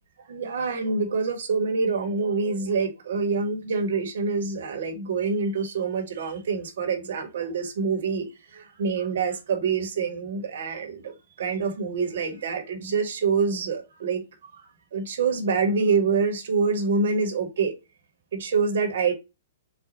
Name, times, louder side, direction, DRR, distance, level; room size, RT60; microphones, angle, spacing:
voice 1, 0.3-14.3 14.5-14.7 14.9-17.7 18.3-19.1, right 4 dB, 65° right, 1.2 m, -26 dB
4.3 x 2.2 x 4.1 m
hypercardioid pair, 120°, 0 cm